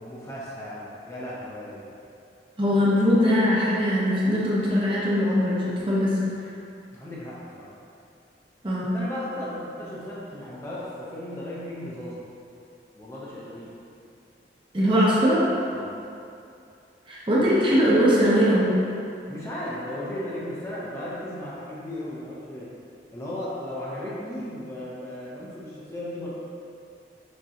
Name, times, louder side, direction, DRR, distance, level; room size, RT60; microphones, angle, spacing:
voice 1, 0.0-1.8 6.9-7.7 8.9-12.2 12.9-13.7 14.8-14.9 15.7-16.0 17.3-17.4 19.3-22.7 23.1-26.3, left 1 dB, 15° left, -8 dB, 0.6 m, -35 dB
voice 2, 2.6-6.2 8.6-8.9 14.7-15.4 17.1-18.7, equal, 30° right, -7 dB, 0.8 m, -21 dB
6.2 x 3.0 x 2.8 m, 2.5 s
head